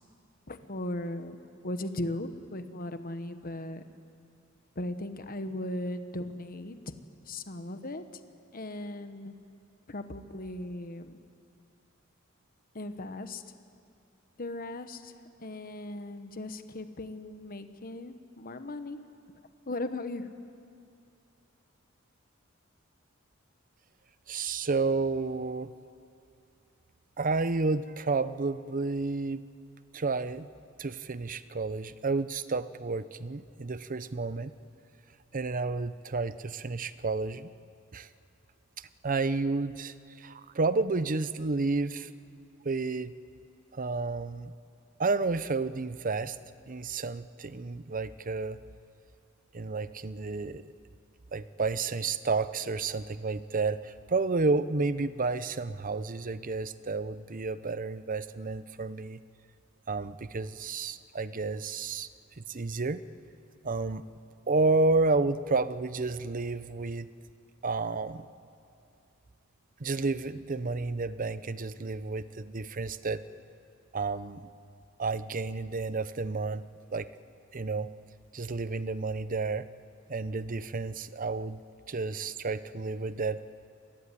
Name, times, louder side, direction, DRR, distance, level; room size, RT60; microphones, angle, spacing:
voice 1, 0.5-1.4 1.6-3.8 4.8-6.8 7.3-8.0 8.5-9.3 9.9-11.2 12.7-13.4 14.4-15.1 15.4-19.0 19.7-20.3, left 1 dB, 45° left, 9 dB, 1.2 m, -37 dB
voice 2, 24.3-25.7 27.2-29.4 29.9-30.5 30.8-34.5 35.3-37.5 37.9-38.1 38.8-42.1 42.6-43.1 43.7-44.5 45.0-46.4 46.7-48.6 49.5-50.7 51.3-59.2 59.9-62.1 62.4-63.0 63.6-64.1 64.5-67.1 67.6-68.3 69.8-73.2 73.9-74.5 75.0-77.1 77.5-77.9 78.3-79.7 80.1-81.6 81.9-83.4, right 3 dB, 40° right, 14 dB, 0.7 m, -31 dB
26.5 x 19.5 x 9.9 m, 2.5 s
head